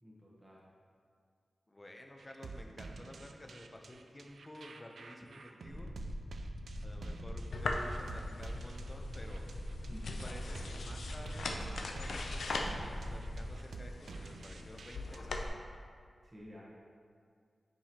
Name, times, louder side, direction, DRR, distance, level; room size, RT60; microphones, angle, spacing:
voice 1, 0.0-0.6 8.3-8.4 9.9-10.7 16.2-16.6, left 1 dB, 20° right, -6 dB, 1.0 m, -53 dB
voice 2, 1.7-5.9 6.8-9.5 10.2-15.6, left 1 dB, 20° left, 2 dB, 0.6 m, -52 dB
sound 1, 2.2-15.2, right 3 dB, 80° right, 0.3 m, -49 dB
sound 2, 5.6-13.4, equal, 40° left, 1.1 m, -43 dB
sound 3, 7.5-15.5, left 2 dB, 85° left, 0.5 m, -41 dB
8.8 x 4.8 x 2.9 m, 2.2 s
wide cardioid pair, 140°, 0 cm